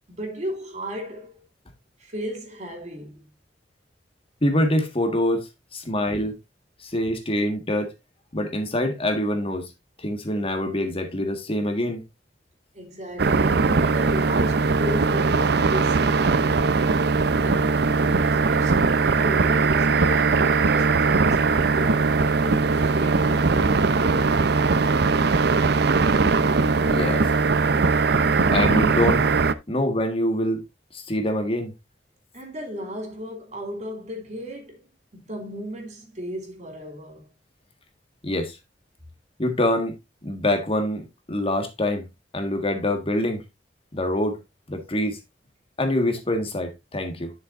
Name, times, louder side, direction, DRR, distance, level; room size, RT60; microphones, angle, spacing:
voice 1, 0.1-1.4 2.0-3.3 12.7-16.8 17.3-17.7 18.0-24.3 32.3-37.3, equal, 40° right, 2.8 m, -35 dB
voice 2, 4.4-6.3 6.8-7.9 8.3-9.7 10.0-12.0 26.9-27.3 28.5-29.3 29.7-30.6 30.9-31.7 38.2-38.6 39.4-39.9 40.2-42.1 42.3-43.4 43.9-44.4 44.7-45.2 45.8-47.3, left 1 dB, 30° left, 1.6 m, -25 dB
sound 1, 13.2-29.5, right 4 dB, 65° right, 0.7 m, -20 dB
11.0 x 6.8 x 2.5 m
head